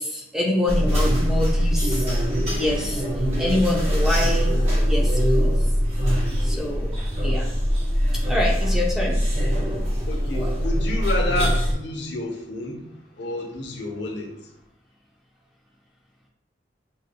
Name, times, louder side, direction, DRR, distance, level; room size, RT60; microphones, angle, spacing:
voice 1, 0.0-2.1 2.5-3.0 3.4-4.5 4.8-5.5 6.4-6.9 7.2-7.5 8.3-9.2, left 1 dB, 5° right, -2 dB, 0.6 m, -26 dB
sound 1, 0.7-11.7, equal, 35° right, 1.1 m, -22 dB
voice 2, 10.1-14.4, left 1 dB, 75° left, 1 dB, 0.8 m, -30 dB
6.1 x 3.2 x 2.2 m, 0.84 s
head